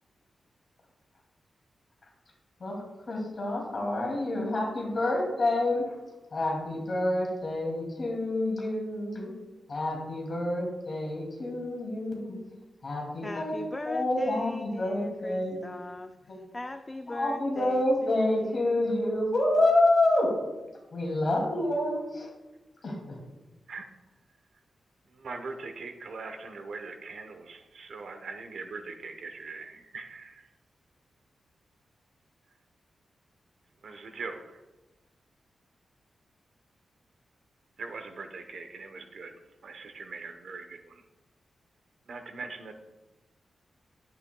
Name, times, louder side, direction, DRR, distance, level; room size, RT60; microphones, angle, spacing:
voice 1, 2.6-5.9 6.3-9.3 9.7-12.4 12.8-15.6 16.3-16.4 17.1-20.3 20.9-22.3 22.8-23.2, left 1 dB, 40° left, -1 dB, 2.4 m, -28 dB
voice 2, 13.2-16.2 16.5-18.7, left 2 dB, 15° left, 8 dB, 0.3 m, -39 dB
voice 3, 25.0-30.5 33.8-34.6 37.8-41.0 42.1-42.7, right 4 dB, 70° right, 6 dB, 0.9 m, -41 dB
11.0 x 8.5 x 2.3 m, 1.1 s
wide cardioid pair, 145°, 0 cm